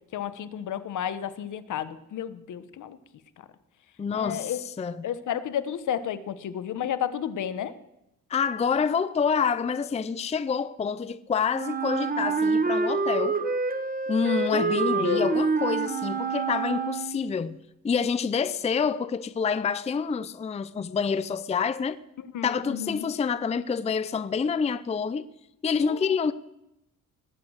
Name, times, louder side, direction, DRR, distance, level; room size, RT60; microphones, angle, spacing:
voice 1, 0.1-3.0 4.1-4.6 5.0-7.7 14.5-15.3 22.2-23.1 25.8-26.1, left 9 dB, 65° left, 1.1 m, -32 dB
voice 2, 4.0-5.0 8.3-13.4 14.1-17.6 17.8-22.0 22.4-25.3 25.6-26.3, left 6 dB, 20° left, 0.5 m, -27 dB
Wind instrument woodwind instrument, 11.5-17.4, right 4 dB, 25° right, 1.3 m, -27 dB
19.5 x 8.3 x 6.4 m
cardioid pair, 120°, 33 cm